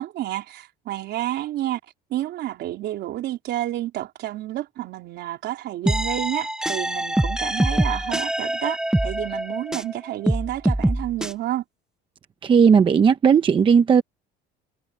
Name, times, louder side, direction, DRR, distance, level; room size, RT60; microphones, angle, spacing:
voice 1, 0.0-1.8 2.1-11.6, right 14 dB, 55° right, 4.0 m, -30 dB
sound 1, 5.9-9.9 10.3-11.3, right 1 dB, 5° right, 0.4 m, -24 dB
voice 2, 12.4-14.0, right 6 dB, 25° right, 0.8 m, -16 dB
cardioid pair, 160°, 21 cm